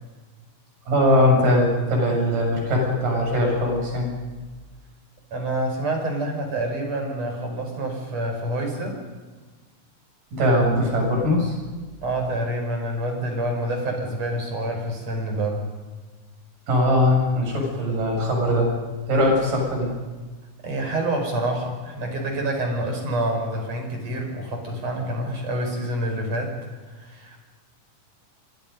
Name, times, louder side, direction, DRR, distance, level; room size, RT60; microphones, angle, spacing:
voice 1, 0.9-4.1 10.3-11.6 16.7-18.7 19.1-19.9, left 1 dB, 80° right, 0 dB, 8.9 m, -20 dB
voice 2, 5.3-9.0 12.0-15.6 20.6-26.6 26.9-27.4, right 1 dB, 50° right, 3 dB, 6.5 m, -27 dB
29.0 x 24.0 x 5.4 m, 1.3 s
omnidirectional pair, 3.8 m